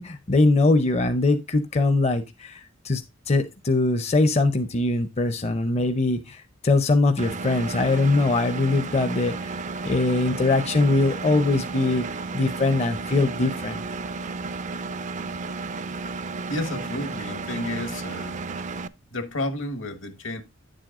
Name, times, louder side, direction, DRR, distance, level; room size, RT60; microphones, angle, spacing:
voice 1, 0.0-3.0 3.3-9.5 9.8-12.1 12.3-13.8, left 2 dB, 35° left, 0.6 m, -22 dB
Engine, 7.2-18.9, right 3 dB, 40° right, 0.4 m, -33 dB
voice 2, 16.5-18.4 19.1-20.4, left 1 dB, 70° left, 1.3 m, -31 dB
9.1 x 7.6 x 2.4 m
head